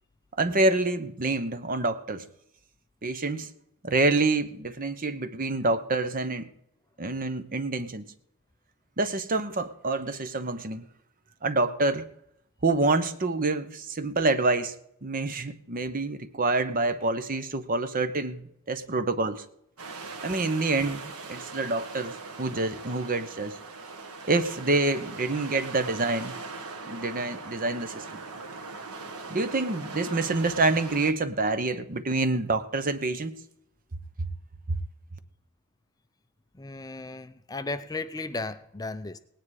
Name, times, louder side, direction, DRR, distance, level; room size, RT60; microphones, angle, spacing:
voice 1, 0.4-2.2 3.0-3.5 3.8-6.5 7.0-8.1 9.0-10.8 11.4-12.1 12.6-14.7 15.0-18.4 18.7-19.4 20.2-23.6 24.2-26.3 26.9-28.2 29.3-33.4 34.7-34.8, right 2 dB, 40° right, 11 dB, 0.9 m, -27 dB
sound 1, 19.8-31.1, right 3 dB, 90° right, 1.5 m, -40 dB
voice 2, 36.6-39.2, left 3 dB, 15° left, 11 dB, 0.5 m, -35 dB
18.0 x 9.8 x 4.8 m, 0.76 s
head